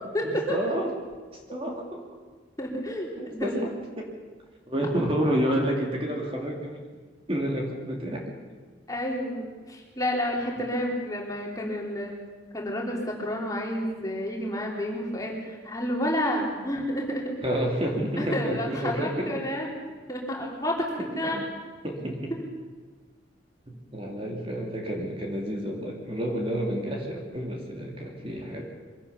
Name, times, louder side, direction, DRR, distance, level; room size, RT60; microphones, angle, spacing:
voice 1, 0.2-0.9 1.5-2.0 3.2-4.1 4.7-6.8 7.3-8.3 17.4-19.4 21.2-21.5 21.8-22.3 23.7-28.7, equal, 30° right, 0 dB, 2.6 m, -29 dB
voice 2, 2.6-3.1 3.4-3.5 8.9-12.1 12.5-17.2 18.2-19.7 20.1-21.4, left 1 dB, 20° left, -1 dB, 3.5 m, -30 dB
23.5 x 16.5 x 7.0 m, 1.5 s
head